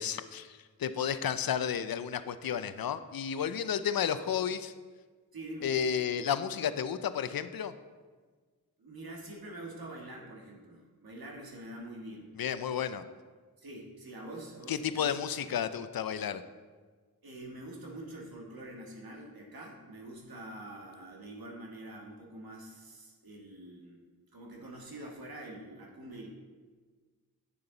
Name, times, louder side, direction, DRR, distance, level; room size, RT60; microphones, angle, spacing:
voice 1, 0.0-4.7 5.6-7.7 12.4-13.0 14.7-16.4, left 8 dB, 75° left, 12 dB, 0.5 m, -32 dB
voice 2, 5.3-5.7 8.8-12.3 13.6-15.2 17.2-24.0 24.3-26.3, right 1 dB, 75° right, -1 dB, 1.7 m, -45 dB
8.7 x 6.8 x 3.9 m, 1.4 s
cardioid pair, 40°, 36 cm